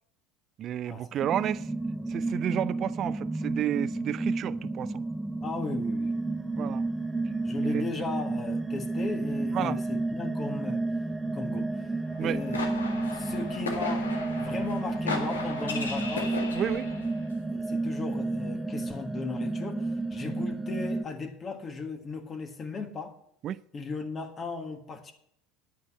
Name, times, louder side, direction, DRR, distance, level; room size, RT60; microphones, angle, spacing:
voice 1, 0.6-1.7 2.1-5.0 6.6-6.8 7.6-7.8 9.5-9.8 11.3-11.4 12.2-12.4 16.5-16.9 23.4-23.6, right 11 dB, 45° right, 0.5 m, -31 dB
sound 1, 1.2-21.0, right 2 dB, 10° right, 0.8 m, -31 dB
voice 2, 5.4-6.1 7.4-10.8 11.3-11.9 12.2-12.7 13.1-16.3 17.5-23.2 23.7-25.1, left 4 dB, 30° left, 1.7 m, -37 dB
sound 2, 12.1-17.2, left 4 dB, 90° left, 1.8 m, -36 dB
9.4 x 9.3 x 6.4 m
hypercardioid pair, 75°, 0 cm